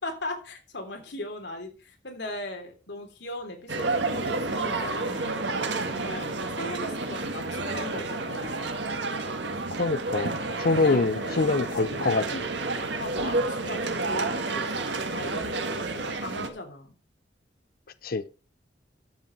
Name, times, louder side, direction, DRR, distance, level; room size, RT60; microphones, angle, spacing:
voice 1, 0.0-8.7 10.7-11.4 13.0-17.0, left 2 dB, 70° left, 3.2 m, -39 dB
sound 1, 3.7-16.5, right 3 dB, 80° right, 1.6 m, -30 dB
voice 2, 9.8-12.5 18.0-18.3, left 3 dB, 55° left, 0.6 m, -25 dB
11.5 x 7.8 x 4.5 m
head